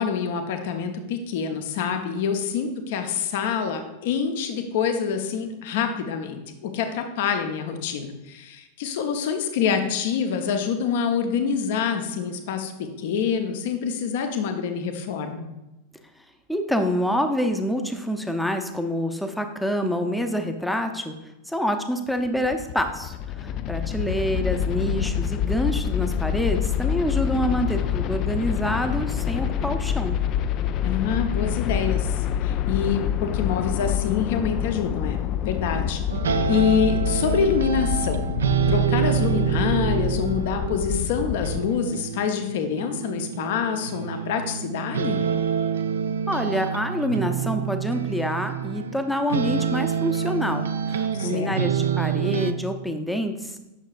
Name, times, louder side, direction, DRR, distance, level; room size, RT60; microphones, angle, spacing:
voice 1, 0.0-15.4 30.8-36.0 36.5-38.2 38.7-45.2 51.1-51.5, left 6 dB, 50° left, 6 dB, 0.8 m, -26 dB
voice 2, 16.5-21.1 21.5-30.2 46.3-53.6, equal, 5° left, 6 dB, 0.6 m, -27 dB
sound 1, 22.2-41.6, left 9 dB, 35° left, 0.3 m, -27 dB
sound 2, 36.1-49.0 49.3-52.5, right 7 dB, 65° right, 0.4 m, -27 dB
8.3 x 6.3 x 2.4 m, 0.99 s
figure-of-eight pair, 90°, 0 cm